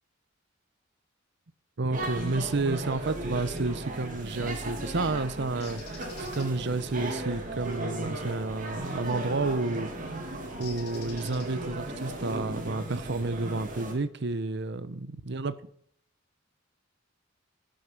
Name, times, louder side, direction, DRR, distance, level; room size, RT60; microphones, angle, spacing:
voice 1, 1.8-15.5, right 3 dB, 60° right, 0.8 m, -31 dB
sound 1, 1.9-13.9, right 2 dB, 40° right, 2.4 m, -36 dB
Bird, 5.6-6.5 9.1-9.3 10.6-11.8, left 6 dB, 50° left, 2.9 m, -47 dB
17.5 x 6.5 x 5.9 m
head